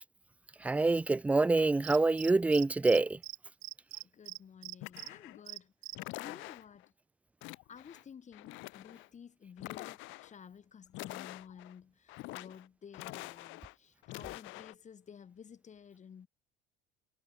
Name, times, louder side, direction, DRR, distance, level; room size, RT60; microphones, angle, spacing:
voice 1, 0.6-3.2, right 3 dB, 5° right, 0.3 m, -26 dB
Cricket, 1.8-3.0 3.2-3.4 3.6-5.1 5.5-5.9, right 24 dB, 70° right, 3.2 m, -43 dB
voice 2, 4.1-5.7 6.2-6.9 7.7-16.3, left 7 dB, 35° left, 3.4 m, -53 dB
sound 1, 4.8-5.4 5.9-6.8 7.4-8.0 8.3-9.1 9.6-10.3 10.9-11.7 12.1-12.7 12.9-13.7 14.0-14.7, left 22 dB, 70° left, 2.5 m, -45 dB
supercardioid pair, 85°, 21 cm